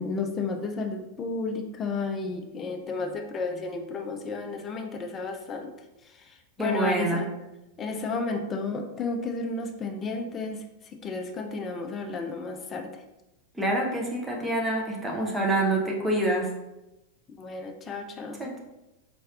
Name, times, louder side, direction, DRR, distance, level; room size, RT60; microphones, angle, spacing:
voice 1, 0.0-5.7 6.0-7.3 7.8-12.9 17.4-18.4, left 3 dB, 25° left, 4 dB, 0.5 m, -32 dB
voice 2, 6.6-7.2 13.5-16.5 18.4-18.6, right 1 dB, 10° right, -2 dB, 0.8 m, -26 dB
4.1 x 3.2 x 2.4 m, 0.96 s
figure-of-eight pair, 90°, 0 cm